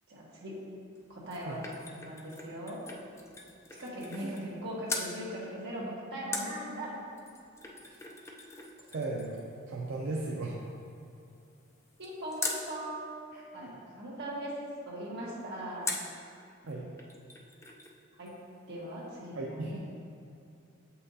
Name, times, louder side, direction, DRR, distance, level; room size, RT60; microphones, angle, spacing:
voice 1, 0.1-0.6 1.1-2.8 3.8-6.9 12.0-14.6 14.9-15.9 18.2-18.3 18.7-19.8, right 1 dB, 55° right, -6 dB, 1.4 m, -40 dB
sound 1, 1.0-4.6 4.9-5.1 6.3-12.7 15.8-16.2 16.7-16.8 17.0-18.0 18.3-18.4, left 3 dB, 15° left, 0.4 m, -42 dB
voice 2, 8.9-9.4 9.7-10.5 13.3-13.7 16.6-16.9 19.4-19.8, right 2 dB, 75° right, -3 dB, 0.6 m, -36 dB
7.2 x 5.6 x 2.7 m, 2.6 s
head